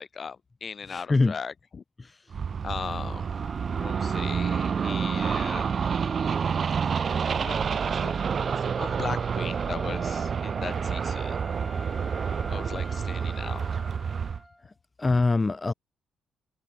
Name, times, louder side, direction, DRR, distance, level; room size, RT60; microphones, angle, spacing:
voice 1, 0.0-1.8 2.6-3.3 3.8-5.7 6.8-8.1 8.4-11.7 12.5-13.8, left 6 dB, 40° left, 2.6 m, -38 dB
voice 2, 0.9-1.3 2.0-2.1 15.0-15.7, left 3 dB, 25° left, 1.4 m, -23 dB
sound 1, 2.3-14.4, right 6 dB, 45° right, 1.3 m, -28 dB
sound 2, 3.2-14.7, left 1 dB, 5° left, 6.5 m, -46 dB
cardioid pair, 90°, 0 cm